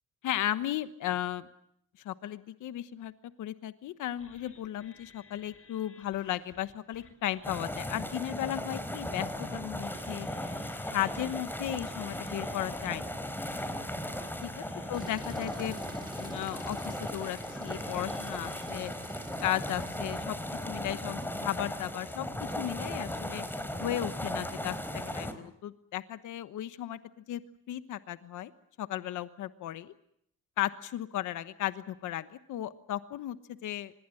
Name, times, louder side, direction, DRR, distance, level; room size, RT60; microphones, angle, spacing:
voice 1, 0.2-1.5 2.0-3.1 3.4-10.3 10.9-13.2 14.4-14.6 14.9-15.8 16.1-18.9 19.4-20.4 20.7-22.3 22.6-23.4 23.8-24.8 25.1-27.0 27.3-27.4 27.7-28.5 28.8-29.9 30.6-33.9, left 12 dB, 80° left, 12 dB, 1.2 m, -35 dB
sound 1, 4.2-7.5 8.1-9.4 9.8-18.7, left 4 dB, 45° left, 5.5 m, -57 dB
sound 2, 7.4-25.3, left 1 dB, 5° left, 4.2 m, -37 dB
Tools, 14.9-20.3, right 2 dB, 15° right, 2.0 m, -49 dB
25.5 x 21.5 x 7.8 m, 0.73 s
cardioid pair, 90°, 30 cm